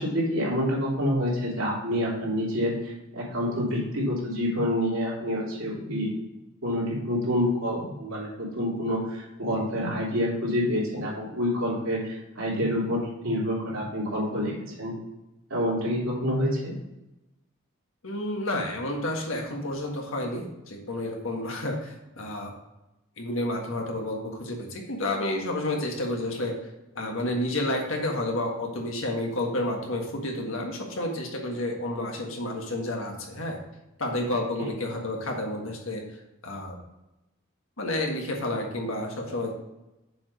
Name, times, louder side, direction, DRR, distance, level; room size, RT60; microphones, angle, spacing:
voice 1, 0.0-6.1 6.6-14.9 15.5-16.7 34.6-34.7, equal, 75° right, -4 dB, 3.0 m, -27 dB
voice 2, 18.0-22.5 23.2-26.6 26.9-33.6 34.0-36.0 36.4-36.8 37.8-39.5, left 1 dB, 70° left, 1 dB, 1.6 m, -30 dB
7.1 x 5.0 x 5.1 m, 0.96 s
head